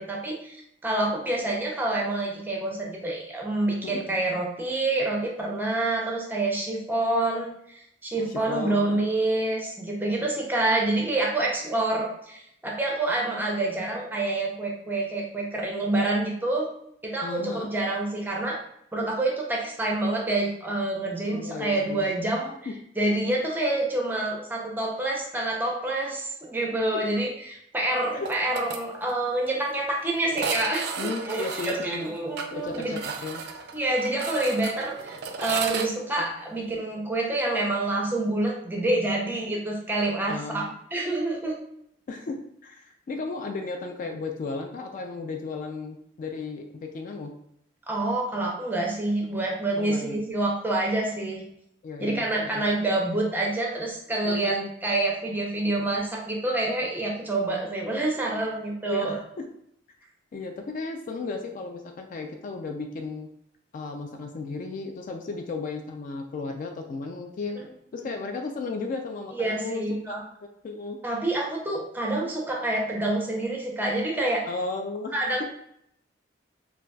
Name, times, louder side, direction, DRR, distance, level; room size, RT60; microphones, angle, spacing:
voice 1, 0.0-7.8 8.0-16.7 17.0-18.6 18.9-22.5 23.0-32.9 33.7-40.6 40.9-41.6 47.9-51.4 52.0-59.2 68.0-68.1 69.3-70.2 71.0-74.5 75.1-75.4, right 2 dB, 10° right, -1 dB, 0.6 m, -27 dB
voice 2, 8.2-9.0 17.2-17.7 21.3-22.1 22.7-22.8 26.7-26.8 28.1-28.3 31.0-32.1 32.5-33.4 40.3-40.8 42.1-42.4 42.6-47.3 49.8-50.2 51.8-52.7 54.2-54.7 58.9-59.4 60.3-63.3 63.7-67.6 67.9-70.2 70.6-71.0 72.2-72.3 74.5-75.1, left 3 dB, 45° left, 4 dB, 0.3 m, -34 dB
sound 1, 28.3-28.8 29.1-29.2 29.5-29.6 30.3-35.9, right 5 dB, 60° right, 0.3 m, -34 dB
3.9 x 2.3 x 2.2 m, 0.72 s
head